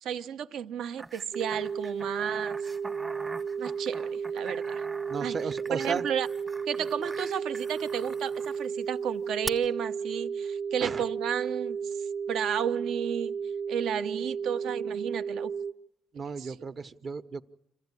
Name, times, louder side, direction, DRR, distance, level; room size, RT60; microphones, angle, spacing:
voice 1, 0.0-2.5 3.6-4.8 5.2-5.4 5.7-6.3 6.7-13.4 13.7-15.5 16.4-16.6, right 8 dB, 80° right, 0.8 m, -33 dB
sound 1, 1.0-8.7 9.5-9.6, right 2 dB, 25° right, 1.0 m, -43 dB
sound 2, 1.3-15.7, right 6 dB, 65° right, 1.0 m, -33 dB
voice 2, 5.1-6.1 10.8-11.0 16.1-17.4, right 5 dB, 50° right, 0.9 m, -34 dB
27.0 x 15.0 x 9.7 m
cardioid pair, 90°, 0 cm